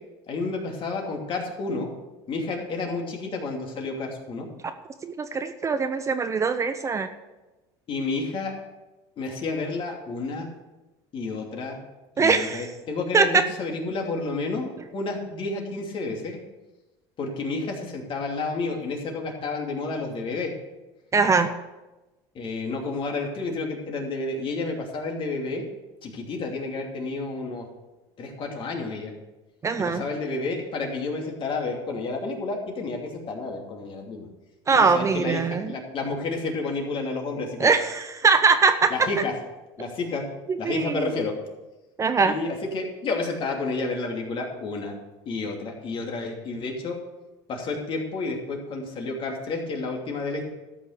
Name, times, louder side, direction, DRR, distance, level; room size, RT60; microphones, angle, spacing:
voice 1, 0.3-1.9 2.3-4.5 7.9-8.5 9.2-10.5 11.1-11.8 12.2-16.4 17.2-20.5 22.3-25.6 26.0-27.7 28.2-29.1 29.8-34.3 34.7-37.7 38.9-39.3 39.8-40.2 40.6-41.4 42.2-44.9 45.3-47.0 47.5-50.5, left 3 dB, 45° left, 1 dB, 2.8 m, -30 dB
voice 2, 5.0-7.1 12.2-12.7 13.1-13.4 21.1-21.5 29.6-30.0 34.7-35.7 37.6-38.9 40.5-41.1 42.0-42.3, right 4 dB, 25° right, 9 dB, 0.7 m, -22 dB
13.0 x 6.2 x 6.7 m, 1.1 s
supercardioid pair, 110°, 13 cm